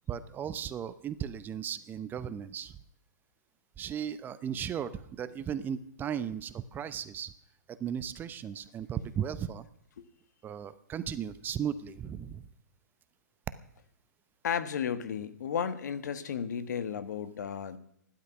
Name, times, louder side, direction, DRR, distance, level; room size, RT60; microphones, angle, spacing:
voice 1, 0.1-2.7 3.8-7.3 7.7-9.7 10.4-12.4, right 8 dB, 20° right, 14 dB, 0.8 m, -36 dB
voice 2, 14.4-17.8, left 7 dB, 70° left, 12 dB, 1.5 m, -33 dB
15.0 x 12.0 x 6.0 m, 0.69 s
hypercardioid pair, 130°, 10 cm